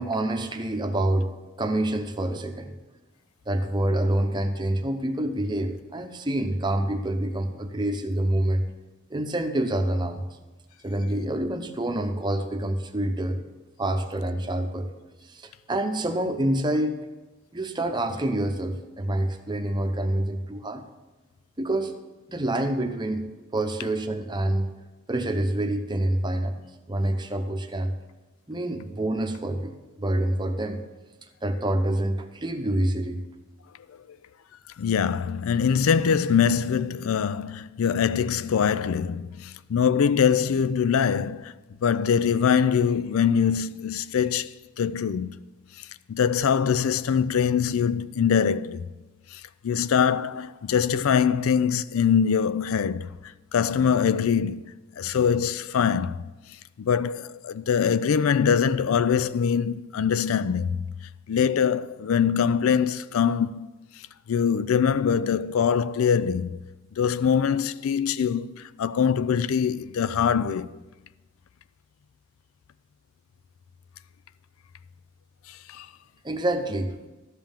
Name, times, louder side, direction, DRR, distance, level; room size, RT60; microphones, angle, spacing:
voice 1, 0.0-1.3 1.6-2.7 3.5-8.7 9.1-10.2 10.8-13.4 13.8-14.9 15.2-17.1 17.5-20.8 21.6-22.0 22.3-23.3 23.5-24.7 25.1-26.6 26.9-27.9 28.5-30.8 31.4-33.2 76.2-77.0, right 1 dB, 20° right, 0.8 m, -27 dB
voice 2, 34.8-41.5 41.8-45.3 45.8-48.9 49.3-56.2 56.8-60.9 61.3-63.7 64.3-66.6 67.0-70.8 75.5-75.9, left 7 dB, 85° left, 0.4 m, -23 dB
13.0 x 5.6 x 7.2 m
head